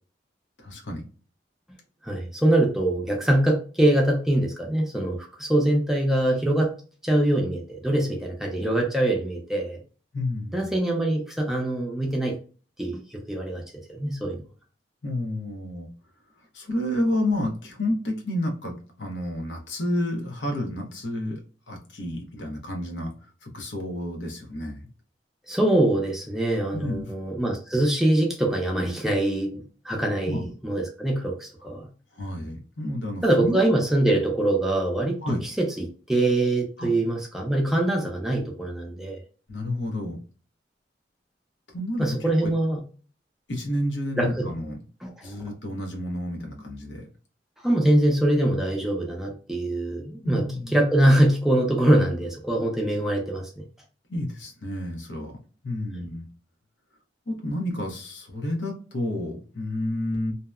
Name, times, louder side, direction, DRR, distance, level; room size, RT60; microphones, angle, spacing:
voice 1, 0.6-1.0 10.1-10.8 15.0-15.9 16.5-21.4 21.7-24.8 26.7-27.1 30.2-30.5 32.1-33.6 35.2-35.5 36.8-36.9 39.5-40.2 41.7-42.2 42.4-42.5 43.5-44.8 45.2-47.1 50.2-50.8 54.1-55.4 55.6-56.3 57.3-60.3, left 1 dB, 90° left, 2 dB, 0.8 m, -30 dB
voice 2, 2.0-6.7 7.0-9.8 10.5-12.3 12.8-13.6 13.9-14.4 25.5-31.9 33.2-35.2 35.4-39.2 42.0-42.8 44.2-44.5 45.0-45.3 47.6-50.4 50.7-53.7, right 1 dB, ahead, 0 dB, 0.5 m, -23 dB
2.7 x 2.1 x 2.3 m, 0.37 s
head